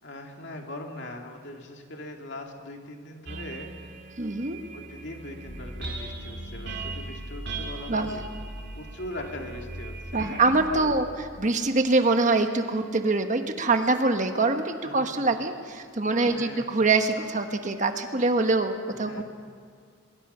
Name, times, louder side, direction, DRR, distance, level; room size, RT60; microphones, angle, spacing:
voice 1, 0.0-3.9 4.7-8.3 8.7-10.2 10.8-10.9 11.5-11.7 14.8-15.3 16.3-16.7 19.1-19.2, left 1 dB, 60° left, 2 dB, 2.5 m, -41 dB
sound 1, 3.3-10.4, right 3 dB, 60° right, 2.0 m, -40 dB
voice 2, 4.2-4.6 7.9-8.1 10.1-11.0 11.4-19.2, right 3 dB, 40° right, 7 dB, 1.2 m, -24 dB
sound 2, 5.5-11.5, equal, 5° right, 1.9 m, -41 dB
24.0 x 22.5 x 5.7 m, 2.1 s
head